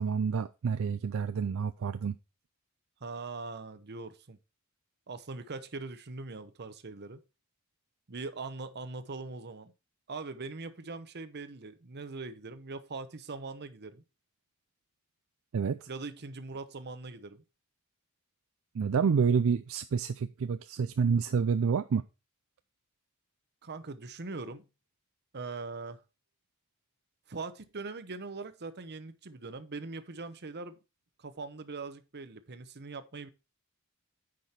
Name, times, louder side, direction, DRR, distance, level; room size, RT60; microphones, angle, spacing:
voice 1, 0.0-2.1 15.5-15.9 18.7-22.0, right 6 dB, 70° right, 0.4 m, -28 dB
voice 2, 3.0-4.4 5.1-7.2 8.1-9.7 10.1-14.0 15.9-17.4 23.6-24.6 25.3-26.0 27.3-30.8 31.2-33.3, right 3 dB, 50° right, 0.9 m, -41 dB
9.6 x 5.1 x 4.3 m
head